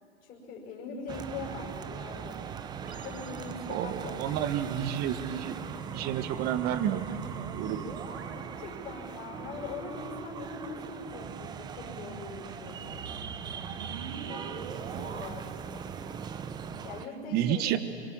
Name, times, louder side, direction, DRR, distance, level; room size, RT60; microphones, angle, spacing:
voice 1, 0.2-2.4 3.0-4.6 8.4-13.0 14.2-15.8 16.8-17.8, left 4 dB, 25° left, -4 dB, 5.8 m, -42 dB
sound 1, 1.1-17.1, right 7 dB, 15° right, 0.6 m, -40 dB
sound 2, 2.8-4.2 6.9-9.6 12.8-15.3, right 6 dB, 85° right, 2.0 m, -44 dB
voice 2, 3.7-5.5 5.9-7.1 7.5-7.8 14.9-15.1 17.3-17.8, right 11 dB, 30° right, 11 dB, 1.3 m, -30 dB
24.5 x 23.0 x 7.4 m, 2.8 s
hypercardioid pair, 130°, 32 cm